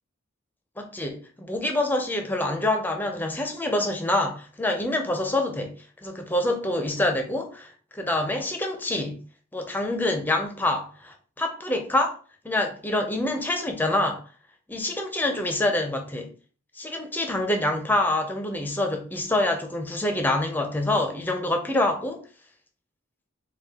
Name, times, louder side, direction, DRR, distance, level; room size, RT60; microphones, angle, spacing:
voice 1, 0.8-5.7 6.0-9.2 9.5-12.2 12.4-14.2 14.7-16.3 16.7-22.2, left 1 dB, 10° left, 0.5 m, -26 dB
4.2 x 2.3 x 3.6 m
head